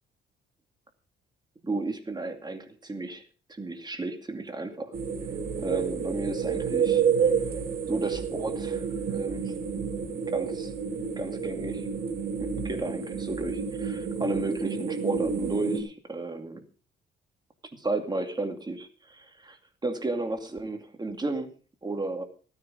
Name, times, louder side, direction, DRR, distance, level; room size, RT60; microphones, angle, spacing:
voice 1, 1.6-3.2 3.5-4.9 5.6-7.3 7.9-9.6 10.3-10.7 11.2-11.9 12.4-16.6 17.7-19.6 19.8-21.5 21.8-22.2, right 2 dB, 20° right, 5 dB, 2.3 m, -33 dB
sound 1, 4.9-15.8, right 6 dB, 50° right, 3.7 m, -29 dB
16.0 x 9.5 x 5.1 m, 0.40 s
cardioid pair, 90°, 20 cm